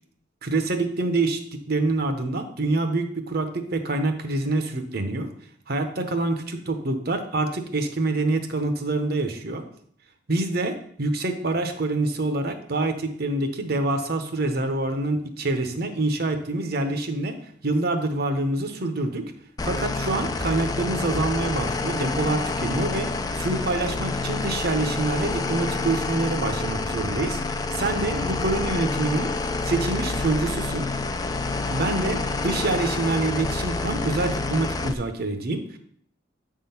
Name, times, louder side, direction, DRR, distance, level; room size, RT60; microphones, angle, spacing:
voice 1, 0.4-1.4 1.7-5.3 5.7-9.6 10.3-17.4 17.6-19.3 19.6-23.1 23.4-29.3 29.6-30.9 31.7-35.8, right 2 dB, 55° right, 7 dB, 0.9 m, -26 dB
sound 1, 19.6-34.9, left 3 dB, 20° left, 0.4 m, -28 dB
8.4 x 3.7 x 5.7 m, 0.63 s
head